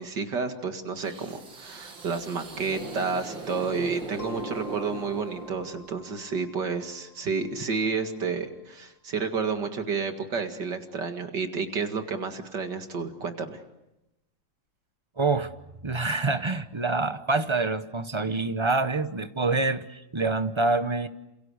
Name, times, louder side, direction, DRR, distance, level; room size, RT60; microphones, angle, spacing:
voice 1, 0.0-13.6, right 5 dB, 65° right, 6 dB, 2.6 m, -30 dB
sound 1, 1.0-6.1, right 3 dB, 80° right, 3.5 m, -39 dB
sound 2, 4.2-8.6, left 4 dB, 75° left, 3.7 m, -50 dB
voice 2, 15.2-15.5 15.8-21.1, right 3 dB, 30° right, 11 dB, 0.5 m, -26 dB
29.0 x 27.5 x 6.5 m, 0.91 s
omnidirectional pair, 2.1 m